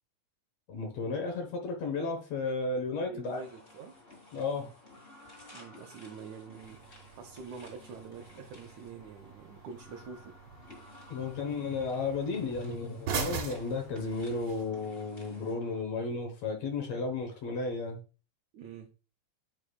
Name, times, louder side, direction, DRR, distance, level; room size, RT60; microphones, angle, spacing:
voice 1, 0.7-3.4 4.3-4.7 11.1-18.0, left 3 dB, 65° left, 1.9 m, -33 dB
voice 2, 3.0-4.0 5.5-6.8 7.1-10.4 18.5-18.9, right 5 dB, 75° right, 1.8 m, -46 dB
sound 1, 3.2-15.8, left 2 dB, 25° left, 1.3 m, -54 dB
sound 2, 6.6-14.6, right 6 dB, 55° right, 2.0 m, -42 dB
9.9 x 4.8 x 2.3 m
omnidirectional pair, 4.0 m